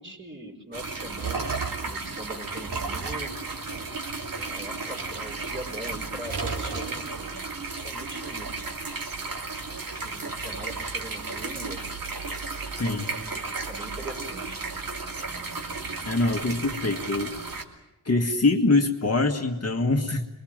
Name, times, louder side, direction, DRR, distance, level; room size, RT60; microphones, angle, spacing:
voice 1, 0.0-3.4 4.3-8.5 9.9-12.3 12.7-14.6, right 1 dB, 25° right, 1 dB, 4.7 m, -42 dB
sound 1, 0.7-17.6, right 3 dB, 55° right, 2.9 m, -34 dB
sound 2, 0.9-2.0 2.7-4.4 4.9-5.9 6.2-7.3, right 4 dB, 70° right, 3.8 m, -34 dB
voice 2, 12.7-13.1 16.0-17.3 18.0-20.3, left 3 dB, 35° left, 3 dB, 1.7 m, -24 dB
28.0 x 23.0 x 7.4 m, 1.0 s
wide cardioid pair, 150°, 42 cm